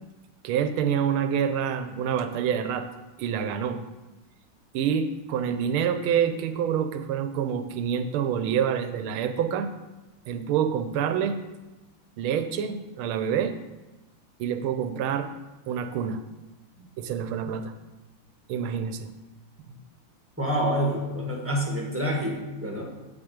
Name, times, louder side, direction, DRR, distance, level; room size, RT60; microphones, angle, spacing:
voice 1, 0.4-2.9 3.2-3.8 4.7-9.7 10.3-11.4 12.2-13.5 14.4-15.3 15.7-16.2 16.8-17.7 18.5-19.1 19.7-19.8, right 8 dB, 85° right, 9 dB, 1.5 m, -27 dB
voice 2, 20.4-22.3 22.6-22.8, equal, 10° right, -1 dB, 1.2 m, -27 dB
8.4 x 6.2 x 5.1 m, 1.1 s
omnidirectional pair, 2.3 m